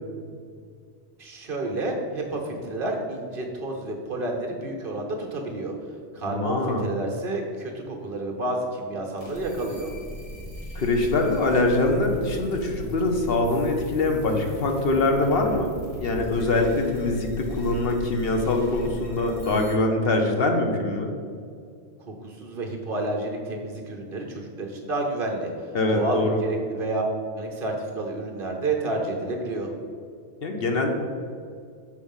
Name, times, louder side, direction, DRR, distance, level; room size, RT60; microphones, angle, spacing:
voice 1, 1.2-5.7 6.1-9.9 22.1-25.5 25.9-29.7, right 2 dB, 55° right, 1 dB, 1.1 m, -30 dB
voice 2, 6.3-6.9 10.7-21.1 25.7-26.4 30.4-30.9, left 2 dB, 60° left, 3 dB, 1.0 m, -23 dB
sound 1, 9.2-19.8, right 1 dB, 30° left, 1.7 m, -39 dB
6.5 x 4.5 x 5.5 m, 2.2 s
omnidirectional pair, 1.2 m